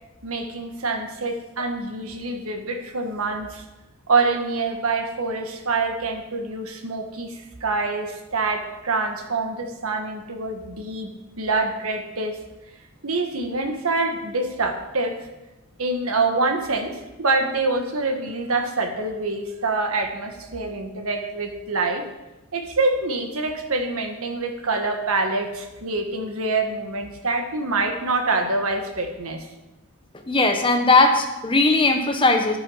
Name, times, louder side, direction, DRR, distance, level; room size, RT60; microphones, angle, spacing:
voice 1, 0.2-3.6 4.1-11.1 11.4-12.4 13.0-15.2 15.8-22.1 22.5-29.4, right 3 dB, 75° right, 4 dB, 1.6 m, -25 dB
voice 2, 30.3-32.6, left 3 dB, 25° left, 4 dB, 1.3 m, -18 dB
11.0 x 9.8 x 5.7 m, 1.0 s
head